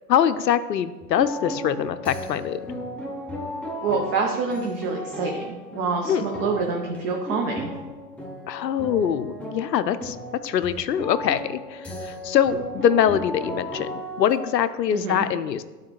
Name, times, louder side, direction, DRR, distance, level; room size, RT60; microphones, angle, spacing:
voice 1, 0.1-2.6 6.1-6.3 8.5-15.6, left 9 dB, 90° left, 13 dB, 0.6 m, -23 dB
sound 1, 1.0-14.3, left 1 dB, 5° left, 0.8 m, -35 dB
voice 2, 3.8-7.7 14.9-15.2, right 4 dB, 20° right, 1 dB, 0.4 m, -27 dB
11.5 x 4.3 x 3.1 m, 1.2 s
hypercardioid pair, 110°, 48 cm